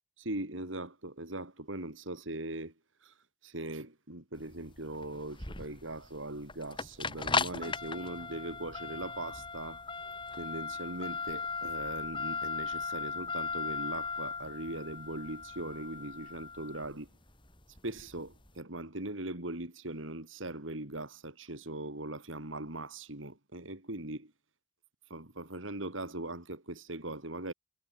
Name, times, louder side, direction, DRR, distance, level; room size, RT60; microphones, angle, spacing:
voice 1, 0.2-2.7 3.0-3.1 3.4-9.8 10.3-17.1 17.8-24.3 25.1-27.5, right 2 dB, 75° right, 4.0 m, -40 dB
sound 1, 4.4-18.5, left 5 dB, 25° left, 3.8 m, -37 dB
head